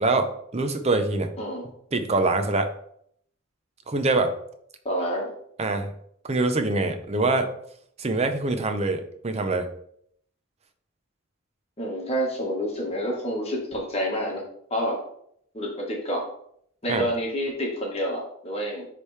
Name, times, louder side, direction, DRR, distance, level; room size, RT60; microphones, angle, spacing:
voice 1, 0.0-1.3 1.9-2.7 3.9-4.3 5.6-5.9 6.2-7.5 8.0-9.7 16.9-17.0, right 2 dB, 30° right, 7 dB, 0.6 m, -24 dB
voice 2, 4.8-5.3 11.8-14.4 14.7-15.0 15.5-16.3 16.8-18.9, equal, 30° left, -2 dB, 1.3 m, -28 dB
9.9 x 3.3 x 3.2 m, 0.68 s
head